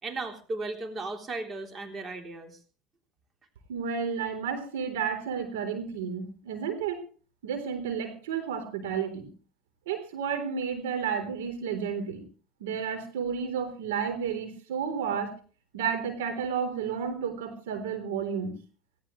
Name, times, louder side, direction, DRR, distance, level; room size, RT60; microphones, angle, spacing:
voice 1, 0.0-2.6, right 3 dB, 30° right, 4 dB, 3.6 m, -36 dB
voice 2, 3.7-7.0 7.4-9.3 9.9-12.2 12.6-15.3 15.7-18.5, right 7 dB, 80° right, 6 dB, 3.7 m, -31 dB
19.0 x 17.5 x 3.2 m, 0.37 s
hypercardioid pair, 85°, 0 cm